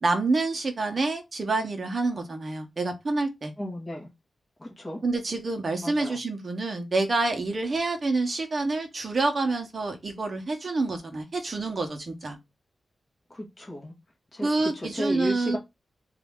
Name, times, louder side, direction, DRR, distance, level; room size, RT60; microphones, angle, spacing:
voice 1, 0.0-3.5 5.0-12.4 14.4-15.6, right 3 dB, 40° right, 1.0 m, -27 dB
voice 2, 3.6-4.1 4.6-5.0 5.8-6.2 13.3-13.9 14.3-15.6, equal, 20° left, 1.6 m, -34 dB
4.1 x 2.7 x 3.6 m
wide cardioid pair, 135°, 0 cm